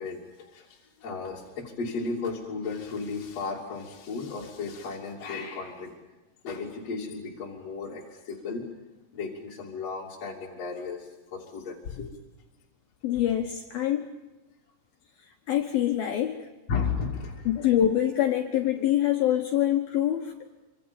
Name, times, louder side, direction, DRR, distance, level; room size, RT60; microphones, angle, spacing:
voice 1, 0.0-5.9 6.4-8.7 9.1-12.1 16.7-17.7, left 4 dB, 35° left, -2 dB, 3.3 m, -34 dB
voice 2, 13.0-14.1 15.5-16.4 17.5-20.3, left 11 dB, 75° left, 3 dB, 2.2 m, -25 dB
26.0 x 25.5 x 7.1 m, 1.1 s
omnidirectional pair, 6.0 m